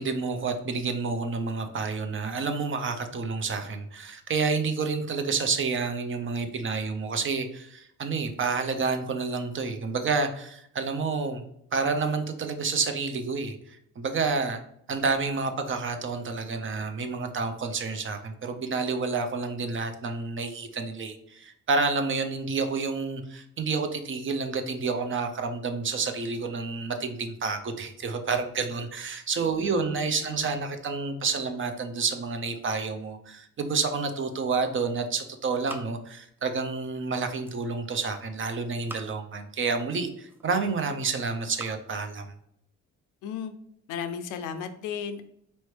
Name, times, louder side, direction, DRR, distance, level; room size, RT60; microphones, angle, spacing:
voice 1, 0.0-11.4 11.7-14.6 14.9-42.3, right 4 dB, 40° right, 7 dB, 0.6 m, -29 dB
voice 2, 29.6-30.5 43.2-43.5 43.9-45.2, left 7 dB, 90° left, 8 dB, 0.5 m, -35 dB
sound 1, 33.9-34.7 35.0-36.5 36.8-37.7 38.5-39.4 40.0-40.7 41.3-41.8, right 1 dB, 5° right, 0.5 m, -47 dB
4.2 x 3.1 x 3.2 m, 0.71 s
cardioid pair, 90°, 30 cm